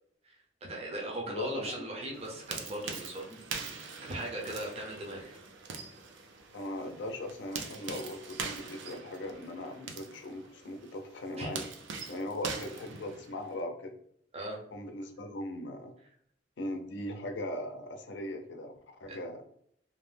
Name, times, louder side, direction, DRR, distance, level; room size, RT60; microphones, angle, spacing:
voice 1, 0.6-5.4 11.4-11.5 14.3-14.6 19.1-19.2, right 1 dB, 35° right, -1 dB, 0.5 m, -39 dB
voice 2, 1.3-1.9 6.5-11.6 12.1-13.9 14.7-15.9 16.6-18.7 19.0-19.4, left 1 dB, 75° left, 4 dB, 0.5 m, -39 dB
sound 1, 2.1-13.6, right 5 dB, 85° right, 0.4 m, -43 dB
2.6 x 2.0 x 3.2 m, 0.66 s
head